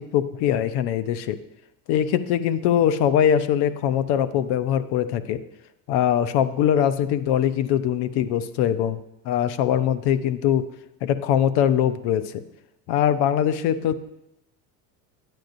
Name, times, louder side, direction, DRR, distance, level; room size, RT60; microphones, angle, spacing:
voice 1, 0.0-1.4 1.9-5.4 5.9-9.0 9.2-10.7 11.0-12.4 12.9-14.0, left 9 dB, 60° left, 12 dB, 0.7 m, -22 dB
10.5 x 9.0 x 2.6 m, 0.84 s
hypercardioid pair, 80°, 45 cm